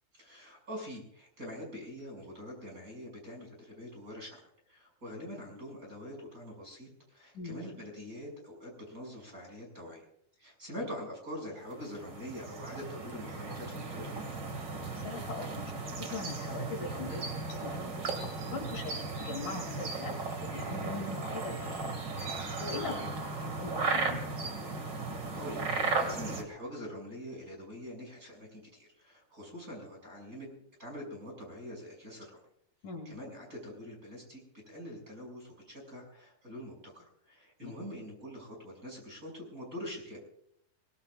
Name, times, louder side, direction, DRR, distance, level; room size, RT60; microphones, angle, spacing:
voice 1, 0.1-4.4 4.7-10.1 10.4-14.2 17.1-17.3 18.8-19.0 22.8-23.1 25.3-30.5 30.8-32.4 33.0-34.4 34.7-40.2, equal, 20° right, 0 dB, 6.8 m, -44 dB
sound 1, 11.6-26.4, right 3 dB, 35° right, 2.2 m, -36 dB
voice 2, 14.9-17.2 17.5-18.0 18.4-18.9 19.2-20.2 20.5-22.0 22.6-23.0 23.4-24.2 32.8-33.1 37.6-37.7, left 3 dB, 55° left, 1 dB, 4.0 m, -40 dB
23.5 x 21.0 x 2.5 m, 0.69 s
omnidirectional pair, 4.5 m